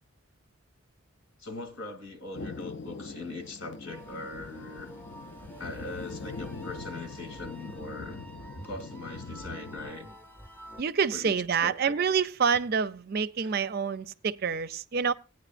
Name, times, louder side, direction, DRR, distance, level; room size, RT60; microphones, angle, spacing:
voice 1, 1.4-4.9 5.6-8.2 8.6-10.1 11.1-11.3 11.6-12.0, left 2 dB, 90° left, 2.5 m, -40 dB
Thunder, 2.3-9.9, left 3 dB, 60° left, 0.5 m, -42 dB
sound 1, 3.9-10.8, right 1 dB, 10° left, 0.7 m, -48 dB
voice 2, 10.8-15.1, right 6 dB, 50° right, 0.4 m, -27 dB
18.0 x 9.4 x 2.5 m
head